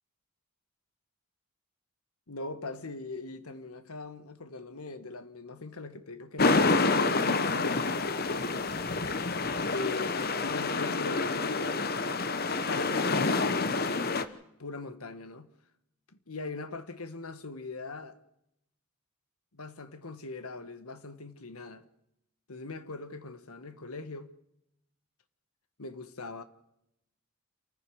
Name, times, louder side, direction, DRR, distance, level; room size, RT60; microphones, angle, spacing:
voice 1, 2.3-8.7 9.0-9.2 9.7-11.6 12.6-13.9 14.3-15.5 16.1-18.2 19.5-21.8 22.5-24.3 25.8-26.4, left 3 dB, 85° left, 1.5 m, -41 dB
sound 1, 6.4-14.2, left 3 dB, 45° left, 1.0 m, -28 dB
28.0 x 14.5 x 6.4 m
head